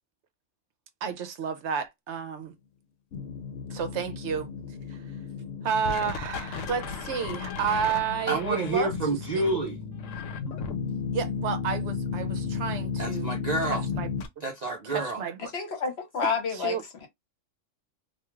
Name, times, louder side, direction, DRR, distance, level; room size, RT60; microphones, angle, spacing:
voice 1, 1.0-2.5 3.7-4.5 4.9-5.0 5.6-8.9 9.3-9.4 11.1-13.3 13.7-14.1 14.4-14.5 14.8-15.5 16.5-16.8, right 7 dB, 70° right, 0.8 m, -31 dB
sound 1, 3.1-14.3, left 5 dB, 80° left, 0.9 m, -34 dB
voice 2, 8.3-9.8 13.0-13.8 14.4-15.2, right 2 dB, 50° right, 0.5 m, -28 dB
voice 3, 15.4-17.1, left 5 dB, 60° left, 1.1 m, -30 dB
2.4 x 2.3 x 3.0 m
omnidirectional pair, 1.3 m